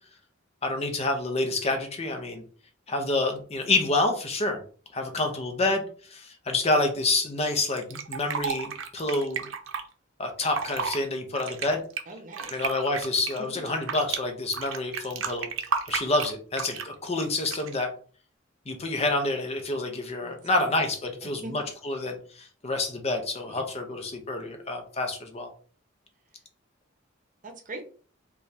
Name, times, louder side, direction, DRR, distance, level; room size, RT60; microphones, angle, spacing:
voice 1, 0.6-2.4 2.9-4.6 4.9-9.5 10.2-11.8 12.5-15.5 15.9-17.9 18.7-25.5, left 2 dB, 35° left, 4 dB, 0.6 m, -28 dB
Fill (with liquid), 7.8-9.8 10.4-11.0 11.3-14.2 14.5-16.9 17.4-17.8, right 6 dB, 75° right, 0.6 m, -32 dB
voice 2, 12.1-12.6 13.4-13.6 20.2-20.7 21.2-21.7 23.5-23.6 27.4-27.8, right 2 dB, 40° right, 3 dB, 0.8 m, -41 dB
4.1 x 2.3 x 3.2 m, 0.42 s
head